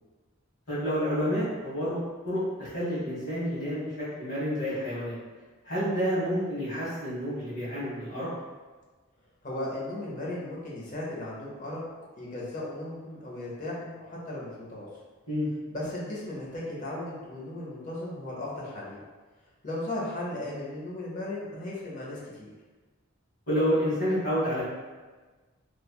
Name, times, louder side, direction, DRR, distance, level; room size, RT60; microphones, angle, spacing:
voice 1, 0.7-2.0 2.2-3.9 4.2-5.2 5.6-8.3 15.3-15.5 23.5-24.6, equal, 55° left, -10 dB, 1.4 m, -29 dB
voice 2, 9.4-11.8 12.2-14.9 15.7-19.0 19.6-22.5, left 1 dB, 40° left, -5 dB, 0.7 m, -36 dB
3.1 x 2.2 x 2.2 m, 1.3 s
head